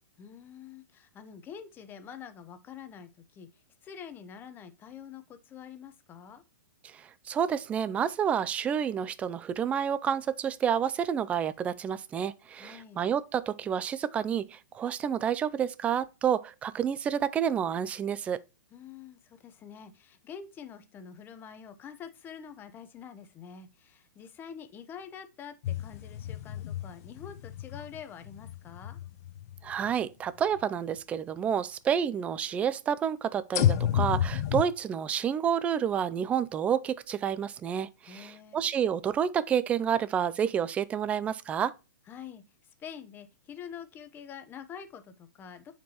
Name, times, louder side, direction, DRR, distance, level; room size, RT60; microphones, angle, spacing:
voice 1, 0.2-6.4 12.6-13.0 18.7-29.0 38.1-38.6 42.1-42.4 42.8-45.7, left 7 dB, 20° left, 0.8 m, -46 dB
voice 2, 6.8-18.4 29.6-41.7, right 8 dB, 10° right, 0.3 m, -29 dB
sound 1, 25.6-29.9 30.6-30.7 33.5-34.6, left 10 dB, 50° left, 0.6 m, -30 dB
9.1 x 4.4 x 2.9 m
hypercardioid pair, 145°, 11 cm